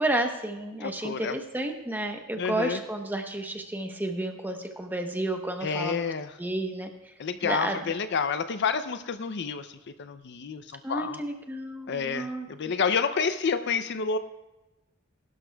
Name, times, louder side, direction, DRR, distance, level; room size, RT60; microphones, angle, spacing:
voice 1, 0.0-6.0 6.4-7.1 7.4-7.9 10.8-12.7, right 1 dB, 10° right, 4 dB, 0.9 m, -31 dB
voice 2, 0.8-1.4 2.4-2.8 5.6-6.3 7.2-9.7 10.0-11.2 11.9-14.2, left 5 dB, 55° left, 11 dB, 0.5 m, -29 dB
20.5 x 12.0 x 2.3 m, 1.0 s
head